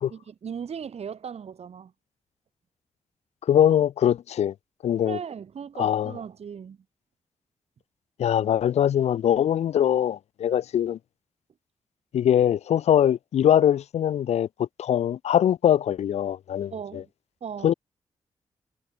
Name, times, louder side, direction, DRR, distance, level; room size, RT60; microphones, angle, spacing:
voice 1, 0.1-1.9 5.0-6.8 16.7-17.1 17.4-17.7, right 7 dB, 65° right, 1.6 m, -37 dB
voice 2, 3.4-4.5 4.8-5.2 5.8-6.1 8.2-11.0 12.1-17.0 17.6-17.7, left 10 dB, 65° left, 0.4 m, -22 dB
cardioid pair, 55°, 12 cm